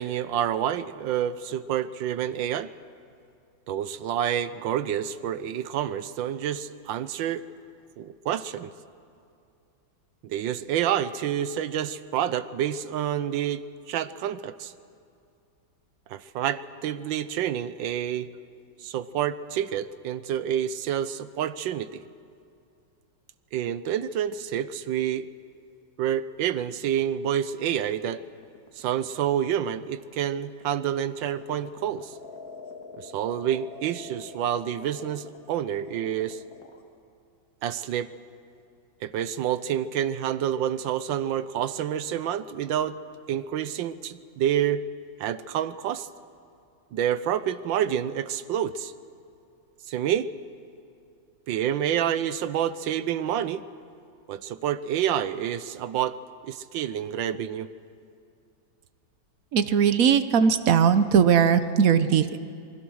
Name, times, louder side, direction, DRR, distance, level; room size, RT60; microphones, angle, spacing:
voice 1, 0.0-2.7 3.7-7.4 8.0-8.7 10.2-14.7 16.1-18.3 18.8-22.0 23.5-25.3 26.0-28.2 28.8-32.2 33.0-36.4 37.6-38.1 39.0-43.0 43.3-44.8 45.2-46.1 46.9-48.9 49.9-50.3 51.5-53.6 54.3-56.2 56.4-57.7, right 10 dB, 80° right, 14 dB, 1.5 m, -28 dB
sound 1, 27.9-36.8, left 3 dB, 50° left, 2.2 m, -45 dB
voice 2, 59.5-62.4, right 7 dB, 55° right, 11 dB, 1.1 m, -19 dB
27.5 x 21.0 x 6.3 m, 2.5 s
omnidirectional pair, 2.1 m